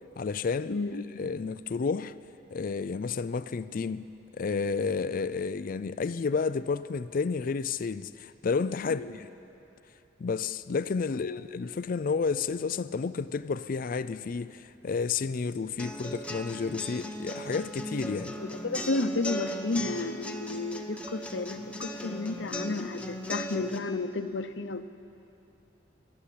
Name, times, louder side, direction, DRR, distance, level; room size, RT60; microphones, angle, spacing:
voice 1, 0.2-0.8 1.2-2.2 2.5-9.3 10.2-18.4, left 5 dB, 50° left, 0.4 m, -31 dB
voice 2, 0.7-1.2 8.9-9.1 11.1-11.4 18.4-24.8, left 3 dB, 80° left, 0.9 m, -32 dB
sound 1, 15.8-23.8, equal, 5° left, 1.2 m, -37 dB
27.5 x 11.5 x 8.5 m
head